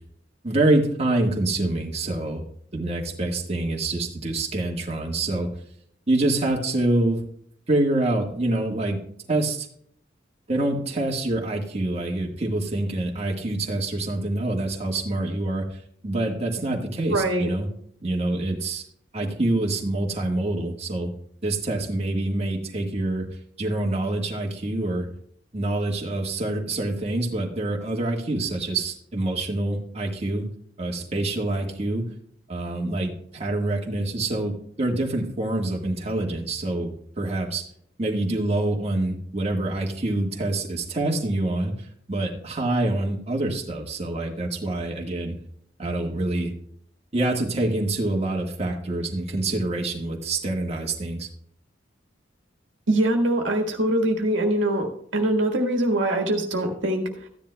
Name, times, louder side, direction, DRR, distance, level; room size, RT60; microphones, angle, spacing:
voice 1, 0.4-2.4 2.7-5.5 6.1-7.2 7.7-9.0 9.3-9.7 10.5-17.7 18.0-18.8 19.1-21.1 21.4-23.3 23.6-25.1 25.5-30.4 30.8-32.1 32.5-37.7 38.0-45.4 45.8-46.5 47.1-51.3, right 2 dB, 35° right, -1 dB, 1.5 m, -26 dB
voice 2, 17.1-17.5 52.9-57.1, right 1 dB, 75° right, 2 dB, 1.6 m, -23 dB
14.5 x 10.5 x 2.2 m, 0.66 s
head